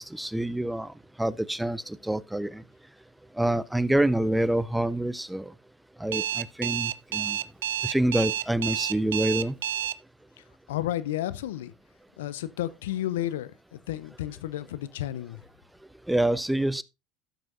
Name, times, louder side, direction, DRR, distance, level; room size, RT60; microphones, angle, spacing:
voice 1, 0.0-2.6 3.3-5.5 6.0-7.4 7.8-9.5 16.1-16.8, right 1 dB, 5° right, 0.5 m, -27 dB
Alarm, 6.1-9.9, right 11 dB, 80° right, 0.4 m, -29 dB
voice 2, 10.7-11.7 12.2-15.4, left 13 dB, 80° left, 0.6 m, -32 dB
15.0 x 6.2 x 2.5 m
hypercardioid pair, 80°, 0 cm